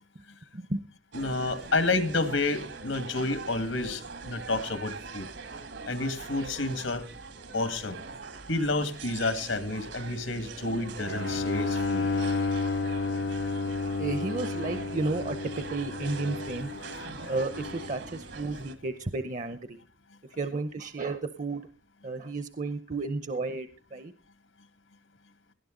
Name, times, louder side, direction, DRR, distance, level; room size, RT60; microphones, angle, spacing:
voice 1, 1.1-5.3 5.9-7.1 7.5-8.0 8.5-12.1, left 3 dB, 85° left, 11 dB, 1.9 m, -30 dB
sound 1, 1.1-18.8, right 4 dB, 70° right, 1.7 m, -42 dB
Bowed string instrument, 11.1-18.1, left 3 dB, 65° left, 0.7 m, -32 dB
voice 2, 14.0-16.7 17.3-19.8 20.3-21.6 22.0-24.1, right 3 dB, 40° right, 11 dB, 0.7 m, -32 dB
19.0 x 11.5 x 3.8 m, 0.35 s
head